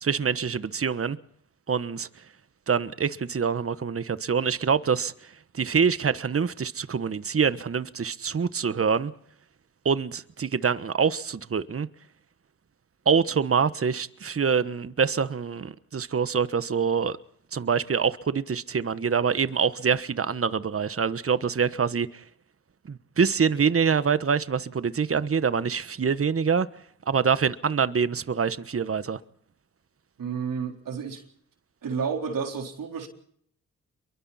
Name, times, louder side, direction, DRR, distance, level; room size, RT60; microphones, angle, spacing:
voice 1, 0.0-1.2 1.7-2.1 2.7-9.1 9.8-11.9 13.0-17.2 17.5-22.2 22.8-26.7 27.1-29.2, right 6 dB, 40° right, 1.2 m, -25 dB
voice 2, 30.2-31.2 31.8-33.1, right 6 dB, 75° right, 4.1 m, -31 dB
28.0 x 23.5 x 4.2 m
supercardioid pair, 40°, 34 cm